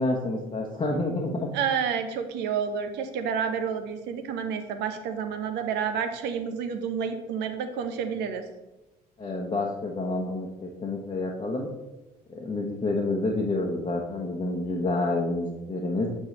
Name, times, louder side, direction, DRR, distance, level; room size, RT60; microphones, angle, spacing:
voice 1, 0.0-1.5 9.2-11.7 12.3-16.1, left 2 dB, 25° left, -2 dB, 1.0 m, -28 dB
voice 2, 1.5-8.4, right 7 dB, 55° right, 8 dB, 0.8 m, -29 dB
7.0 x 6.3 x 3.2 m, 1.0 s
figure-of-eight pair, 55°, 20 cm